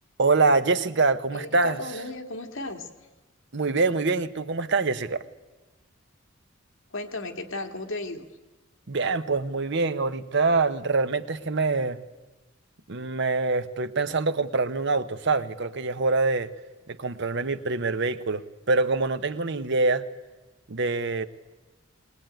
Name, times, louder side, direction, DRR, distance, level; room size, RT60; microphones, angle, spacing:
voice 1, 0.2-1.8 3.5-5.2 8.9-12.0 12.9-16.5 16.9-20.0 20.7-21.3, right 3 dB, 60° right, 12 dB, 1.0 m, -25 dB
voice 2, 1.3-2.9 6.9-8.3, left 2 dB, 75° left, 3 dB, 2.3 m, -34 dB
20.5 x 20.0 x 9.1 m, 1.2 s
head